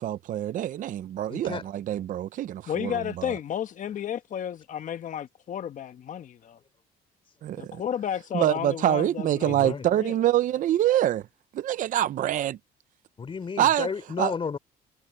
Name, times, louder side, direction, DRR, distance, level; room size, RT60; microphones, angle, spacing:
voice 1, 0.0-3.3 7.4-7.8 8.3-11.2 11.5-12.6 13.6-13.9 14.2-14.3, right 12 dB, 50° right, 0.5 m, -25 dB
voice 2, 1.3-1.6 9.5-9.9 13.2-14.6, left 5 dB, 30° left, 3.4 m, -32 dB
voice 3, 2.7-6.6 7.6-10.1, left 9 dB, 50° left, 1.4 m, -33 dB
cardioid pair, 110°, 17 cm